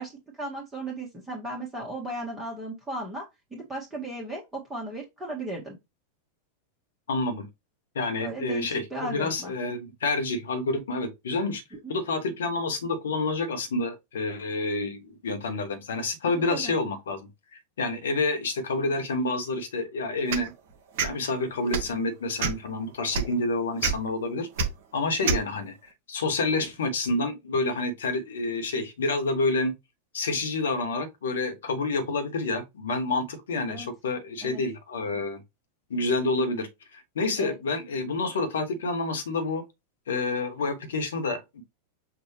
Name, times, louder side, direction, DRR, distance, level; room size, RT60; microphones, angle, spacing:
voice 1, 0.0-5.8 8.2-9.5 11.7-12.0 16.2-16.7 25.2-25.4 33.7-33.9 34.4-34.6 37.4-37.6, right 1 dB, 5° right, 1.4 m, -36 dB
voice 2, 7.1-7.5 7.9-11.6 11.9-17.3 17.8-20.5 21.0-24.5 24.9-25.7 26.1-29.7 30.1-35.4 35.9-39.6 40.1-41.6, left 3 dB, 65° left, 1.3 m, -28 dB
sound 1, 20.3-20.5 21.0-21.1 21.7-21.9 22.4-22.7 23.1-23.3 23.8-23.9 24.6-24.7 25.2-25.4, right 6 dB, 50° right, 0.9 m, -25 dB
6.0 x 2.6 x 3.2 m
figure-of-eight pair, 90°, 0 cm